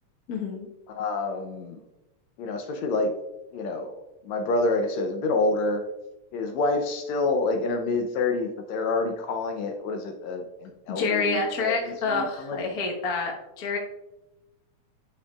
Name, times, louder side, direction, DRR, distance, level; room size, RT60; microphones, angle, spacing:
voice 1, 0.3-0.7 10.9-13.8, left 4 dB, 55° left, 0 dB, 1.0 m, -28 dB
voice 2, 0.9-1.8 2.4-3.1 3.5-5.8 6.3-12.8, left 3 dB, 75° left, 5 dB, 1.8 m, -28 dB
11.0 x 5.6 x 2.3 m, 0.97 s
omnidirectional pair, 3.4 m